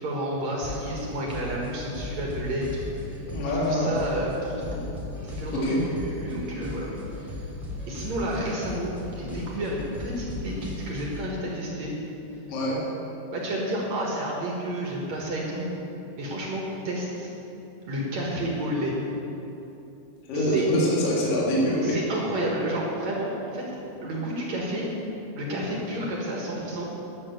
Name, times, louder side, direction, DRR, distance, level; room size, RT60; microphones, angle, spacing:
voice 1, 0.0-2.7 2.9-4.9 5.2-7.4 7.9-11.9 13.3-15.7 16.2-17.3 17.9-18.9 20.3-20.6 21.8-23.8 24.0-24.9 25.4-26.9, right 1 dB, 55° right, -3 dB, 2.2 m, -31 dB
sound 1, 0.6-11.3, left 1 dB, ahead, 1.7 m, -37 dB
voice 2, 3.3-3.9 5.6-5.8 12.5-12.8 20.3-21.9, equal, 60° left, -5 dB, 3.3 m, -24 dB
11.5 x 6.9 x 8.2 m, 2.9 s
omnidirectional pair, 4.9 m